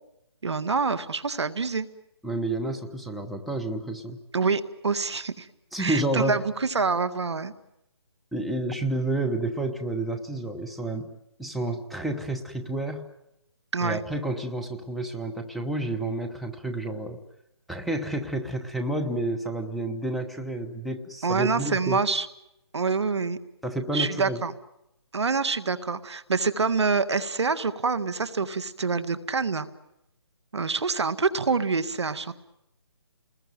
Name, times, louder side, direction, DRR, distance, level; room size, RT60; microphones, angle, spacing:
voice 1, 0.4-1.9 4.3-5.5 5.8-7.5 13.7-14.0 21.2-22.3 22.7-23.4 23.9-24.5 25.1-29.7 30.5-32.3, right 4 dB, 75° right, 13 dB, 1.8 m, -26 dB
voice 2, 2.2-4.2 5.7-6.4 8.3-11.1 11.4-13.1 13.8-17.2 17.7-22.0 23.6-24.4, right 2 dB, ahead, 2 dB, 0.9 m, -30 dB
29.0 x 20.5 x 9.2 m, 0.88 s
hypercardioid pair, 155°, 14 cm